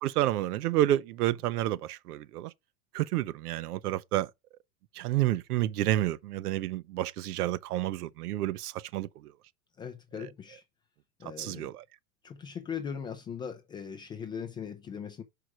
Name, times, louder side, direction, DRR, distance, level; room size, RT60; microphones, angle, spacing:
voice 1, 0.0-2.5 2.9-4.3 4.9-9.3 11.2-11.8, right 14 dB, 80° right, 0.8 m, -30 dB
voice 2, 9.8-10.6 11.2-11.7 12.2-15.2, left 7 dB, 10° left, 0.3 m, -39 dB
6.0 x 4.8 x 6.4 m
supercardioid pair, 140°, 45 cm